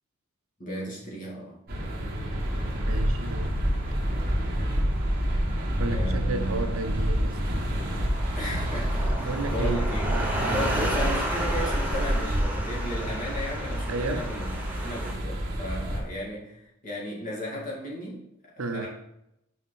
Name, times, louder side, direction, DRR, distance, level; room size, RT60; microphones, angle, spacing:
voice 1, 0.6-1.6 5.9-6.7 8.3-10.1 10.4-14.5 14.8-18.2 18.6-18.9, equal, 40° left, 2.3 m, -35 dB
sound 1, 1.7-16.0, equal, 45° right, 1.7 m, -28 dB
sound 2, 2.4-15.1, right 1 dB, 10° right, 1.1 m, -35 dB
voice 2, 2.9-3.6 5.8-7.6 9.1-10.9 13.9-14.3 18.6-18.9, right 3 dB, 75° right, 0.6 m, -33 dB
5.8 x 5.5 x 4.1 m
head